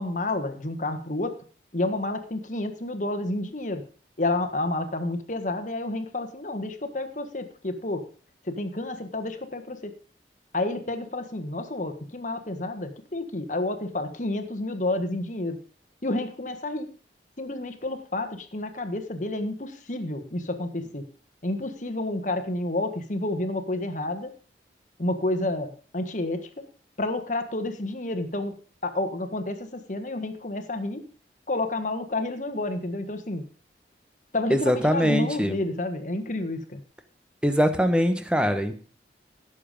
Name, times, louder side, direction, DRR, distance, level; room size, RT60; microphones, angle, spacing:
voice 1, 0.0-1.3 1.7-3.8 4.2-8.0 8.4-9.9 10.5-15.6 16.0-16.9 17.4-21.0 21.4-24.3 25.0-26.6 27.0-28.5 28.8-31.0 31.5-33.5 34.3-36.8, left 2 dB, 45° left, 8 dB, 1.5 m, -30 dB
voice 2, 34.5-35.6 37.4-38.7, equal, 5° right, 8 dB, 1.1 m, -22 dB
16.5 x 7.2 x 5.2 m, 0.39 s
head